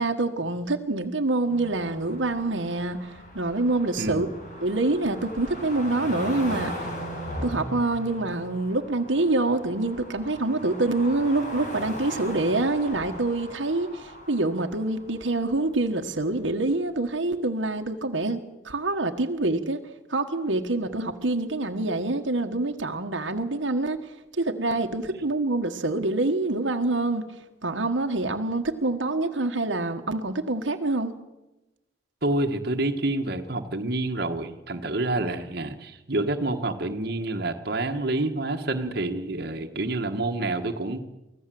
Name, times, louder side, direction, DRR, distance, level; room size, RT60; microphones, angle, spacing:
voice 1, 0.0-4.3 4.6-6.9 7.4-18.4 18.6-19.8 20.1-27.3 27.6-31.1, right 2 dB, 85° right, 4 dB, 1.5 m, -26 dB
sound 1, 1.5-15.6 16.3-16.4, equal, 45° left, 5.7 m, -38 dB
voice 2, 4.0-4.3 32.2-41.0, right 2 dB, 55° right, 4 dB, 1.6 m, -28 dB
24.0 x 16.0 x 7.7 m, 1.0 s
head